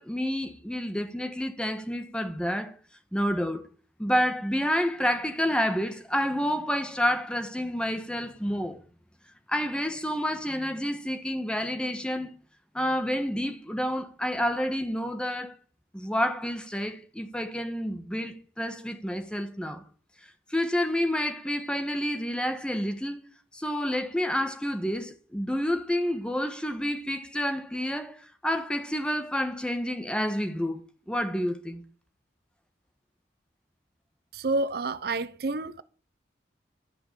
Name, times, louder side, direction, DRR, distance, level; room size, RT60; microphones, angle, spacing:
voice 1, 0.0-2.7 3.1-3.7 4.0-8.8 9.5-12.3 12.7-15.5 15.9-19.8 20.5-23.2 23.5-31.8, equal, 5° left, 1.4 m, -29 dB
voice 2, 34.3-35.8, right 2 dB, 55° right, 0.6 m, -29 dB
12.5 x 5.9 x 8.7 m
head